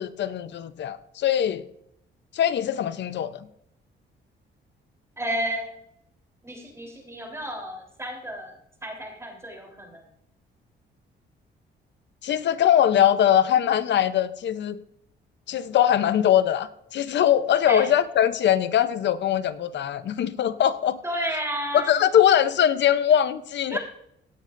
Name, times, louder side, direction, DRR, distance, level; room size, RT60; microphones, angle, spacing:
voice 1, 0.0-1.6 2.3-3.5 12.2-14.8 15.5-21.0 21.7-23.8, left 10 dB, 65° left, 0.7 m, -22 dB
voice 2, 5.2-5.7 6.4-8.6 8.8-10.0 17.7-17.9 21.0-22.0 23.7-23.8, equal, 15° right, 3.6 m, -32 dB
17.0 x 11.0 x 2.6 m
cardioid pair, 90°, 20 cm